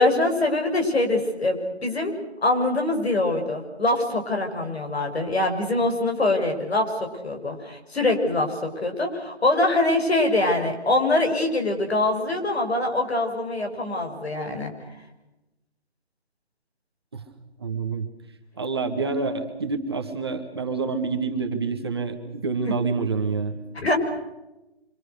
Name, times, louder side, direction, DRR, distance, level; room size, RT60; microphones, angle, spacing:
voice 1, 0.0-2.1 2.4-14.7 22.6-22.7 23.7-24.0, left 2 dB, 70° left, 4 dB, 6.3 m, -24 dB
voice 2, 17.6-18.1 18.6-23.6, right 4 dB, 25° right, 4 dB, 1.4 m, -27 dB
26.0 x 24.5 x 6.6 m, 0.98 s
hypercardioid pair, 175°, 33 cm